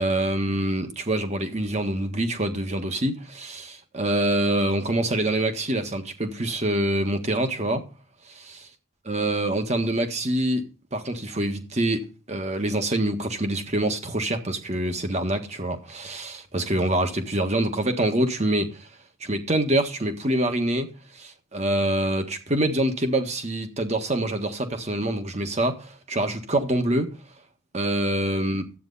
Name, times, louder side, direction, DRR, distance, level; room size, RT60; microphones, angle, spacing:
voice 1, 0.0-7.9 9.0-10.6 10.9-18.9 19.2-27.1 27.7-28.6, right 1 dB, 35° right, 1.5 m, -25 dB
12.0 x 8.9 x 4.0 m
head